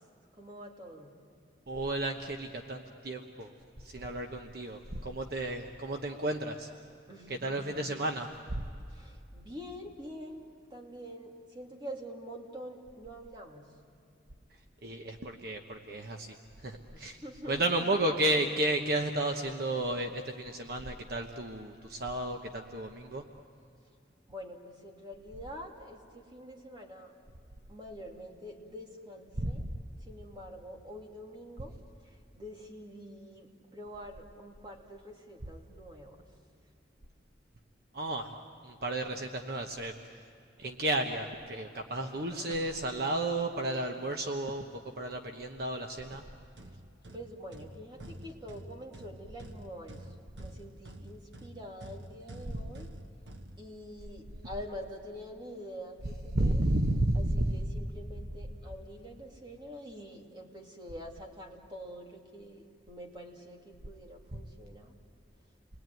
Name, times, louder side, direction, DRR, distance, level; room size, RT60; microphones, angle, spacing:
voice 1, 0.4-1.1 7.1-7.9 8.9-13.7 16.9-18.4 24.3-27.1 27.7-29.6 30.1-31.7 32.0-36.2 42.0-42.8 47.1-52.9 53.6-56.7 57.1-64.9, equal, 25° right, 0 dB, 2.7 m, -46 dB
voice 2, 1.7-3.5 3.8-6.7 7.3-8.6 14.8-16.3 16.6-17.2 17.5-23.2 29.4-29.5 37.9-38.3 38.6-39.9 40.6-44.7 45.0-46.2 56.3-57.5, right 1 dB, 55° right, 4 dB, 1.1 m, -32 dB
sound 1, 46.1-54.1, right 1 dB, 80° right, 1.5 m, -49 dB
29.5 x 22.0 x 9.3 m, 2.4 s
head